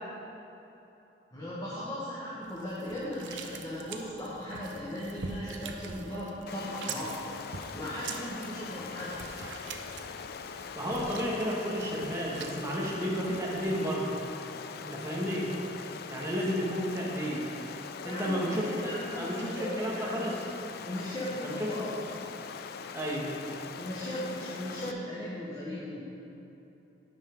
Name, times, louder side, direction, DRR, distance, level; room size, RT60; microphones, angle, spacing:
voice 1, 1.3-9.1 18.0-20.2 20.8-22.0 23.8-26.0, equal, 20° left, -8 dB, 1.3 m, -37 dB
sound 1, 2.4-13.8, right 5 dB, 85° right, 0.6 m, -45 dB
Stream, 6.5-24.9, left 6 dB, 60° left, 0.4 m, -42 dB
voice 2, 10.6-14.2 14.8-15.5 16.1-17.5 18.0-20.4 21.4-22.0 22.9-23.3, equal, 15° right, -5 dB, 1.3 m, -32 dB
9.2 x 5.4 x 5.2 m, 2.9 s
head